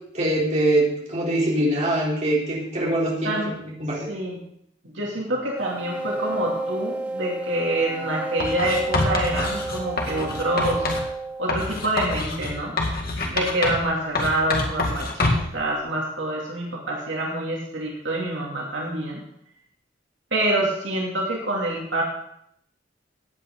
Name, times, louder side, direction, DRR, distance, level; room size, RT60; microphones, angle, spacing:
voice 1, 0.1-3.4 3.8-4.1, right 1 dB, 40° right, -4 dB, 3.7 m, -23 dB
voice 2, 3.2-3.5 4.1-4.4 4.8-10.9 11.4-12.7 13.2-19.2 20.3-22.0, right 1 dB, 75° right, -2 dB, 2.7 m, -26 dB
sound 1, 5.6-12.0, right 2 dB, 10° right, 1.4 m, -31 dB
Writing, 8.4-11.1 11.5-13.9 14.2-15.6, left 2 dB, 55° left, 2.0 m, -26 dB
16.0 x 9.0 x 3.9 m, 0.72 s
head